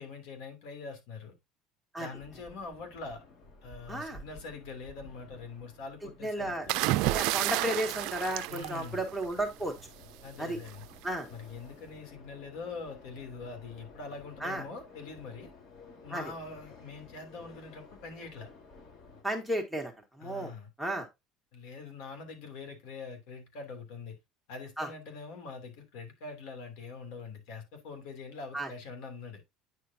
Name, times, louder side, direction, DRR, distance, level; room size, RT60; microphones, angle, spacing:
voice 1, 0.0-1.3 2.0-3.2 3.6-6.9 8.5-9.0 10.2-10.9 11.3-15.5 16.0-18.5 20.2-20.7 21.5-24.2 24.5-29.4, left 4 dB, 75° left, 3.0 m, -44 dB
sound 1, 2.1-19.2, left 3 dB, 45° left, 3.7 m, -54 dB
voice 2, 3.9-4.2 6.2-6.7 7.0-9.7 10.4-10.6 11.0-11.3 14.4-14.6 16.1-16.2 19.2-19.9 20.2-20.5 20.8-21.1 24.8-24.9 28.5-28.7, right 1 dB, ahead, 1.7 m, -33 dB
sound 2, 6.7-9.4 10.7-11.0, right 18 dB, 75° right, 0.4 m, -30 dB
9.4 x 5.0 x 2.8 m
cardioid pair, 125°, 0 cm